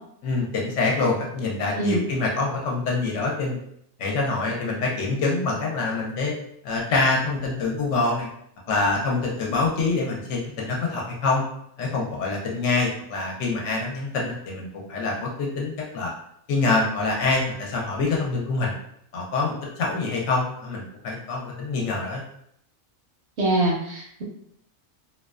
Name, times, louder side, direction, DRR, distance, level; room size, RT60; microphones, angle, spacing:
voice 1, 0.2-3.6 4.0-6.3 6.6-8.3 8.7-11.4 11.8-16.1 16.5-18.7 19.1-22.2, left 3 dB, 70° left, -2 dB, 0.9 m, -25 dB
voice 2, 23.4-24.2, right 2 dB, 65° right, -2 dB, 0.7 m, -23 dB
2.5 x 2.2 x 2.3 m, 0.72 s
omnidirectional pair, 1.4 m